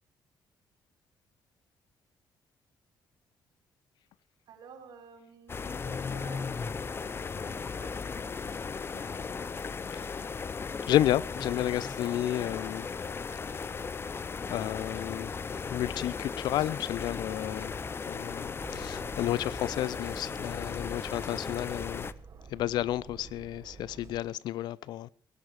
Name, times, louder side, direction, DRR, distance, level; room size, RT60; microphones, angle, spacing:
voice 1, 4.5-9.0 14.9-15.1, right 5 dB, 75° right, 4.7 m, -53 dB
sound 1, 5.5-22.1, left 5 dB, 35° left, 0.8 m, -36 dB
voice 2, 10.9-12.9 14.5-15.3 15.7-17.7 18.1-22.1 22.5-25.1, left 13 dB, 80° left, 0.7 m, -31 dB
Aircraft, 18.6-24.2, right 6 dB, 50° right, 1.7 m, -50 dB
18.5 x 12.5 x 4.8 m
cardioid pair, 100°, 7 cm